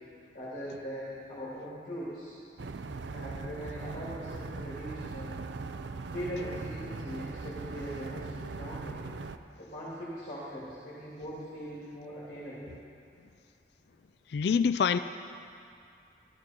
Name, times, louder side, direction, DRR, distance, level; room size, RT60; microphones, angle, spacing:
voice 1, 0.3-2.3 3.1-5.4 6.1-9.1 9.6-12.7, equal, 45° left, -9 dB, 2.9 m, -40 dB
sound 1, 2.6-9.4, right 3 dB, 80° right, 0.5 m, -40 dB
voice 2, 14.3-15.0, left 6 dB, 65° left, 12 dB, 0.3 m, -25 dB
14.0 x 13.5 x 4.5 m, 2.4 s
head